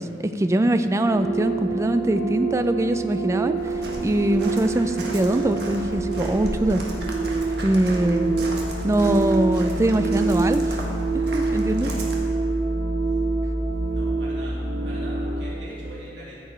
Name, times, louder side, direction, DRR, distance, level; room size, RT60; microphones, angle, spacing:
voice 1, 0.0-6.8 7.6-8.3 8.8-10.8 11.3-11.9, right 1 dB, 15° right, 9 dB, 0.4 m, -22 dB
sound 1, 1.1-15.5, right 3 dB, 35° right, 1.5 m, -26 dB
Walk footsteps, 3.6-12.1, right 1 dB, 60° right, 1.5 m, -36 dB
voice 2, 11.1-11.6 13.0-13.2 13.9-14.6 14.8-16.4, right 1 dB, 75° right, -7 dB, 2.6 m, -42 dB
14.0 x 6.9 x 4.3 m, 2.5 s
head